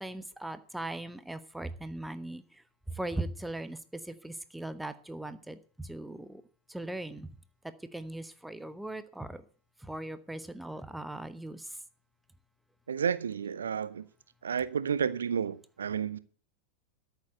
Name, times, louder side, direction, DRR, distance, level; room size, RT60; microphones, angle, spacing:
voice 1, 0.0-3.8 4.0-6.4 6.7-7.3 7.8-9.4 9.8-11.8, right 1 dB, 5° right, 0.9 m, -39 dB
voice 2, 12.9-14.0 14.4-16.2, right 7 dB, 70° right, 0.6 m, -31 dB
13.0 x 7.1 x 8.0 m
figure-of-eight pair, 90°, 0 cm